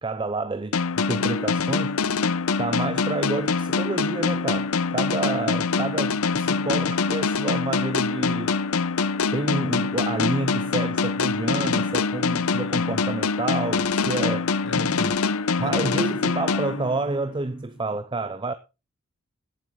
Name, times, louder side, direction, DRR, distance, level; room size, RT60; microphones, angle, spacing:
voice 1, 0.0-2.0 2.6-8.6 9.3-15.2 15.6-18.5, right 2 dB, 20° right, 0.5 m, -29 dB
sound 1, 0.7-17.3, left 4 dB, 80° left, 0.7 m, -24 dB
voice 2, 12.5-13.1 14.6-16.1, left 2 dB, 55° left, 1.7 m, -39 dB
17.0 x 7.6 x 3.8 m
head